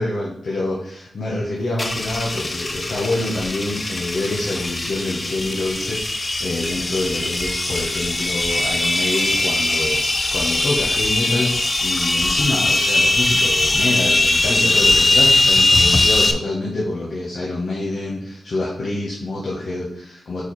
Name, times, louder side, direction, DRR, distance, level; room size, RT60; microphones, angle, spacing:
voice 1, 0.0-10.0 10.3-20.4, left 2 dB, 55° left, -5 dB, 1.3 m, -26 dB
sound 1, 1.8-16.3, left 2 dB, 25° left, 0.5 m, -20 dB
4.7 x 4.7 x 4.3 m, 0.66 s
wide cardioid pair, 150°, 0 cm